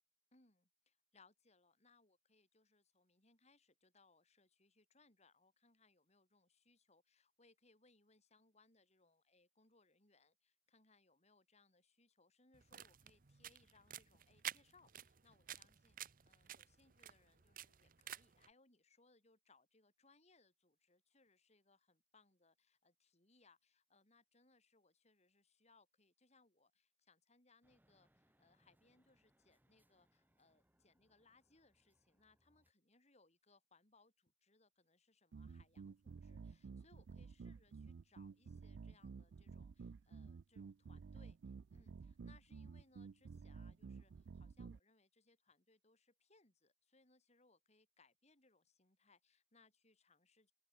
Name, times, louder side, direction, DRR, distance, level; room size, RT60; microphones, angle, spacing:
voice 1, 0.3-50.5, left 3 dB, 40° left, 6.9 m, -72 dB
sound 1, 12.5-18.5, right 11 dB, 50° right, 0.8 m, -52 dB
sound 2, 27.6-32.7, equal, 10° right, 5.1 m, -79 dB
sound 3, 35.3-44.8, right 5 dB, 90° right, 0.4 m, -52 dB
open air
head